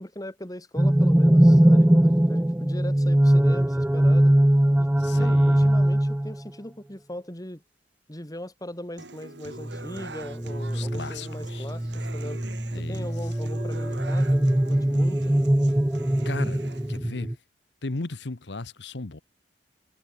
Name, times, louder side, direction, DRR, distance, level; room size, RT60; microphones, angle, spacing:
voice 1, 0.0-4.4 4.8-7.6 8.1-12.4 12.7-15.4, left 1 dB, 20° left, 3.4 m, -39 dB
sound 1, 0.8-6.4 9.6-17.3, right 1 dB, 10° right, 0.4 m, -21 dB
voice 2, 5.0-5.7 10.7-11.7 12.7-13.1 16.2-17.4 17.8-19.2, left 3 dB, 75° left, 1.1 m, -36 dB
Human voice / Acoustic guitar, 9.0-17.0, right 2 dB, 80° right, 4.8 m, -43 dB
head